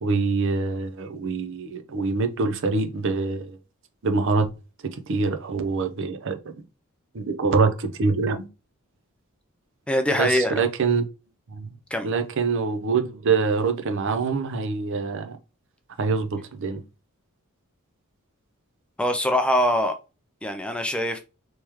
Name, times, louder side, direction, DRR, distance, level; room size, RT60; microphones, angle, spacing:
voice 1, 0.0-3.6 4.0-4.5 4.9-6.5 7.1-8.5 10.2-11.0 11.5-11.7 12.0-15.4 16.0-16.8, right 4 dB, 60° right, 0.6 m, -25 dB
voice 2, 9.9-10.6 11.9-12.1 19.0-20.0 20.4-21.2, left 1 dB, 5° left, 0.3 m, -23 dB
3.5 x 3.1 x 3.0 m
head